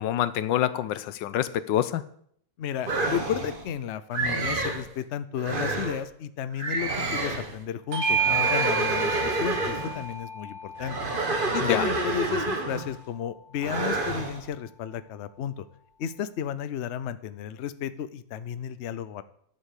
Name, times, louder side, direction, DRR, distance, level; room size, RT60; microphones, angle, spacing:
voice 1, 0.0-2.0 11.6-11.9, left 11 dB, 90° left, 15 dB, 1.4 m, -26 dB
voice 2, 2.6-11.0 11.5-15.7 16.0-19.2, left 9 dB, 60° left, 13 dB, 0.7 m, -33 dB
sound 1, 2.8-3.6 4.1-4.9 5.4-6.0 6.6-7.6 8.1-10.0 10.8-13.0 13.6-14.4, right 3 dB, 30° right, 1.5 m, -29 dB
Bell / Doorbell, 7.9-12.8, right 5 dB, 65° right, 2.1 m, -30 dB
11.0 x 6.4 x 8.3 m, 0.65 s
omnidirectional pair, 2.0 m